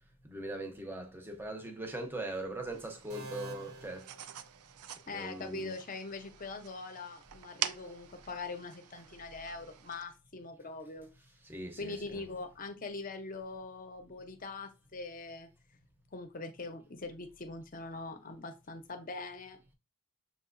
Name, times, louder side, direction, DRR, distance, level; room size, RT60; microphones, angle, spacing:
voice 1, 0.2-4.1 5.1-5.7 11.4-12.2, right 1 dB, 10° right, 0.6 m, -40 dB
sound 1, 2.7-10.0, right 10 dB, 90° right, 0.4 m, -45 dB
sound 2, 3.1-5.0, right 2 dB, 70° right, 0.8 m, -48 dB
voice 2, 5.1-11.1 11.8-15.5 16.1-19.7, left 3 dB, 40° left, 0.7 m, -42 dB
6.8 x 2.8 x 2.5 m
head